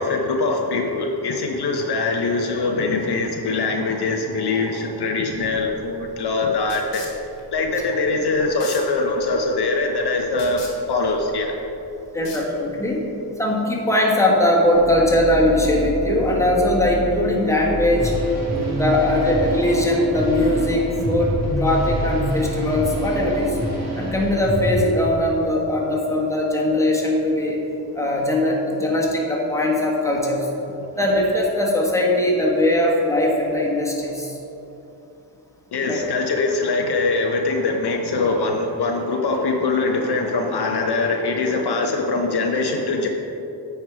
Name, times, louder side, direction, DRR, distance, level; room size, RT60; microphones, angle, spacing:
voice 1, 0.0-7.0 7.5-10.6 10.9-11.5 35.7-43.1, left 3 dB, 65° left, 2 dB, 0.8 m, -22 dB
sound 1, 5.3-13.0, left 3 dB, 80° left, 1.7 m, -42 dB
voice 2, 12.1-13.0 13.4-18.1 18.7-23.6 24.0-27.6 27.9-30.5 31.0-34.4 35.9-36.1, left 1 dB, 5° left, -3 dB, 1.5 m, -20 dB
sound 2, 14.7-25.5, equal, 15° right, 1.1 m, -30 dB
sound 3, 18.0-24.8, right 1 dB, 40° right, 1.7 m, -28 dB
8.9 x 4.7 x 4.7 m, 2.9 s
cardioid pair, 85°, 42 cm